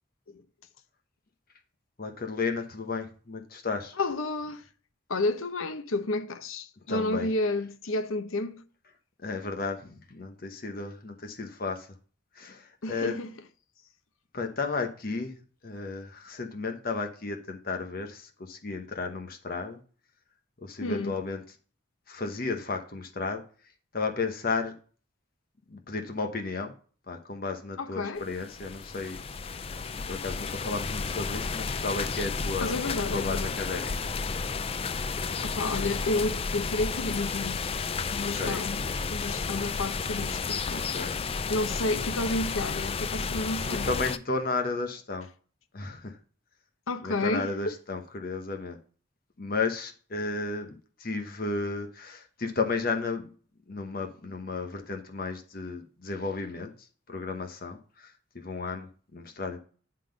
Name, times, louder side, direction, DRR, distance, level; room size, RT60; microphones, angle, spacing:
voice 1, 2.0-4.0 6.9-7.3 9.2-11.9 12.3-13.2 14.3-15.4 15.6-19.8 20.6-21.4 22.1-23.4 23.9-24.7 25.7-26.7 27.1-29.2 29.5-29.6 29.9-34.1 38.2-38.6 40.7-41.2 43.7-45.3 45.7-46.2 47.0-48.8 49.4-53.3 53.7-59.6, left 3 dB, 45° left, 1.0 m, -33 dB
voice 2, 4.0-4.7 5.1-8.6 12.8-13.3 20.8-21.1 27.8-28.3 32.6-33.6 35.4-37.7 38.1-38.8 39.1-40.9 41.5-43.9 46.9-47.5, left 2 dB, 85° left, 0.9 m, -31 dB
sound 1, 28.2-44.2, left 5 dB, 30° left, 0.4 m, -32 dB
9.8 x 3.9 x 5.1 m
head